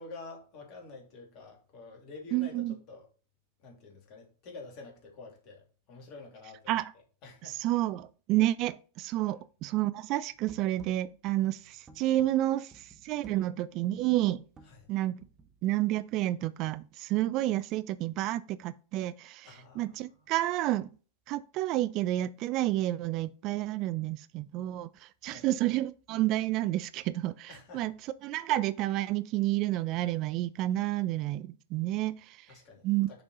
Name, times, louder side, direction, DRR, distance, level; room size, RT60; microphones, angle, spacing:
voice 1, 0.0-3.1 3.6-7.6 14.7-14.9 19.4-20.3 25.2-25.5 27.5-27.9 32.5-33.2, left 3 dB, 40° left, 2.8 m, -49 dB
voice 2, 2.3-2.8 6.7-6.9 7.4-14.4 14.9-15.2 15.6-19.5 19.8-20.9 21.3-27.9 28.2-32.5 32.8-33.1, right 15 dB, 40° right, 0.3 m, -30 dB
sound 1, 10.3-15.6, right 3 dB, 20° right, 1.2 m, -56 dB
6.7 x 5.2 x 4.3 m
figure-of-eight pair, 90°, 0 cm